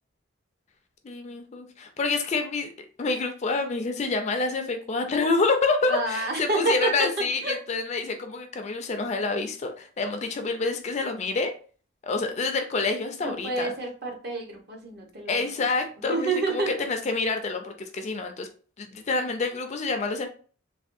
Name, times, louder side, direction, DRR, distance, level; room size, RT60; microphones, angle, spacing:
voice 1, 1.0-2.7 3.0-6.3 6.6-11.5 12.0-13.7 15.3-16.3 16.7-18.5 18.8-20.3, left 3 dB, 35° left, 6 dB, 0.4 m, -27 dB
voice 2, 5.9-7.6 13.2-15.4 16.0-16.8, right 2 dB, 50° right, 0 dB, 0.9 m, -29 dB
3.4 x 2.2 x 2.6 m, 0.40 s
head